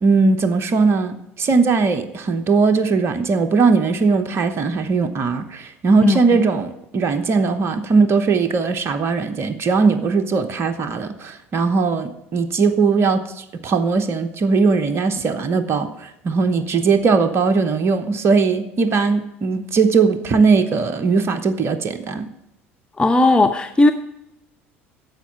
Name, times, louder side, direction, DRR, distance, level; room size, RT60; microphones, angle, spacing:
voice 1, 0.0-22.3, right 4 dB, 40° right, 1.0 m, -19 dB
voice 2, 23.0-23.9, left 2 dB, 15° left, 0.7 m, -15 dB
10.5 x 7.3 x 7.1 m
figure-of-eight pair, 65°, 7 cm